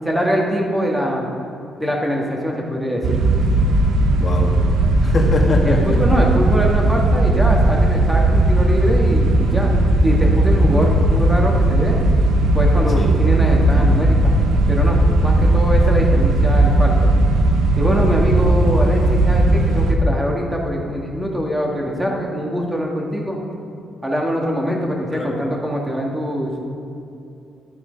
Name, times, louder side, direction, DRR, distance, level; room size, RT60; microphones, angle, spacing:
voice 1, 0.0-1.3 1.8-3.2 5.6-9.7 10.0-12.0 12.5-14.3 14.7-17.1 17.8-23.4 24.0-26.5, equal, 10° right, -1 dB, 2.0 m, -23 dB
sound 1, 3.0-20.0, right 1 dB, 80° right, 1.1 m, -16 dB
voice 2, 4.1-4.6 5.0-6.0 12.9-13.1 25.1-25.3, left 2 dB, 40° left, 0 dB, 1.5 m, -22 dB
11.5 x 8.8 x 5.3 m, 2.6 s
cardioid pair, 90°, 0 cm